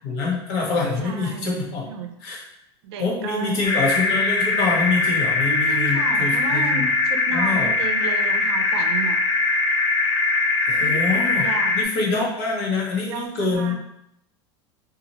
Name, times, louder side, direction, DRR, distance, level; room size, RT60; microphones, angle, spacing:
voice 1, 0.0-2.4 3.0-6.9 7.3-7.7 10.7-11.4 11.7-13.7, left 4 dB, 60° left, -2 dB, 1.0 m, -25 dB
voice 2, 1.0-2.1 2.8-3.7 5.4-9.2 10.8-11.8 12.9-13.7, right 5 dB, 75° right, 6 dB, 0.5 m, -33 dB
sound 1, 3.6-11.8, left 3 dB, 80° left, 0.6 m, -21 dB
2.7 x 2.4 x 2.9 m, 0.78 s
supercardioid pair, 115°, 14 cm